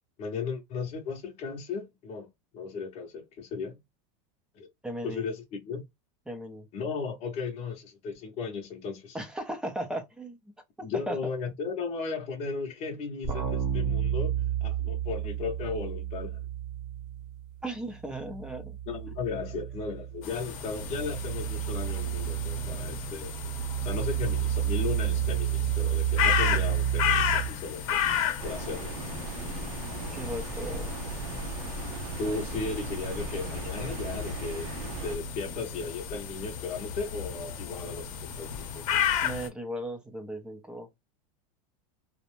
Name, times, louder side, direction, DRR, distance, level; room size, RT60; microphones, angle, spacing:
voice 1, 0.2-2.3 2.5-3.8 4.5-4.7 5.0-5.8 6.7-9.2 10.8-16.4 18.9-23.3 23.8-28.1 28.4-28.9 32.2-38.8, left 4 dB, 35° left, 0.7 m, -36 dB
voice 2, 4.8-5.2 6.3-6.7 9.1-10.4 10.8-11.2 17.6-18.8 30.1-30.9 39.2-40.9, right 1 dB, 5° right, 0.5 m, -36 dB
sound 1, 13.2-17.6 17.9-27.5, right 11 dB, 25° right, 0.9 m, -31 dB
sound 2, 20.2-39.5, left 8 dB, 70° left, 0.7 m, -33 dB
sound 3, 28.4-35.2, right 4 dB, 80° right, 0.5 m, -38 dB
2.5 x 2.0 x 3.0 m
supercardioid pair, 150°, 18 cm